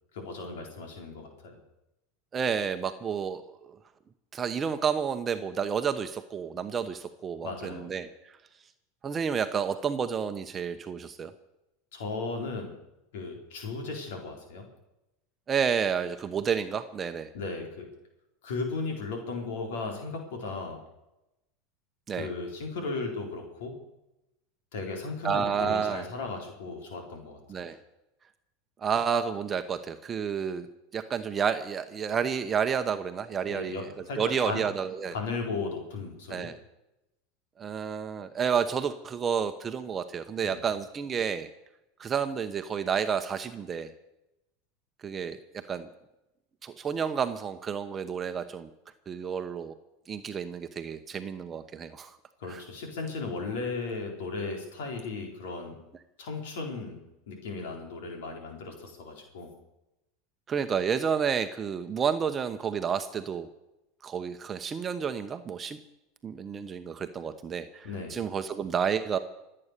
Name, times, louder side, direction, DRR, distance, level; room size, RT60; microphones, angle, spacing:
voice 1, 0.1-1.6 7.4-7.9 11.9-12.7 13.1-14.7 17.3-17.9 18.4-20.8 22.1-23.7 24.7-27.6 33.5-34.7 35.1-36.5 40.4-40.6 52.4-55.8 56.2-57.0 57.3-59.5 67.8-68.2, left 3 dB, 80° left, 2 dB, 4.2 m, -36 dB
voice 2, 2.3-3.8 4.3-8.1 9.0-11.3 15.5-17.3 22.1-22.3 25.2-26.0 27.5-27.8 28.8-30.7 30.9-35.1 36.3-36.6 37.6-41.5 42.0-43.9 45.0-45.9 46.6-48.7 49.1-49.7 50.1-52.2 52.5-52.6 60.5-63.5 64.0-65.8 66.2-69.2, right 7 dB, 25° right, 8 dB, 1.0 m, -30 dB
24.5 x 8.8 x 6.7 m, 0.92 s
supercardioid pair, 110°, 0 cm